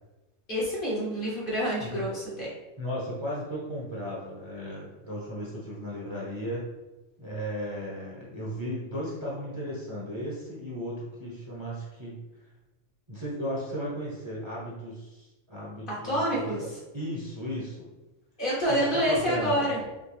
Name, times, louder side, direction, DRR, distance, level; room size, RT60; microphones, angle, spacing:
voice 1, 0.5-2.5 16.0-16.6 18.4-19.8, equal, 50° left, -6 dB, 1.2 m, -27 dB
voice 2, 2.8-6.6 7.2-12.5 13.1-16.4 16.9-17.9 18.7-19.7, equal, 25° right, -6 dB, 0.8 m, -35 dB
5.4 x 2.2 x 3.3 m, 1.1 s
omnidirectional pair, 1.3 m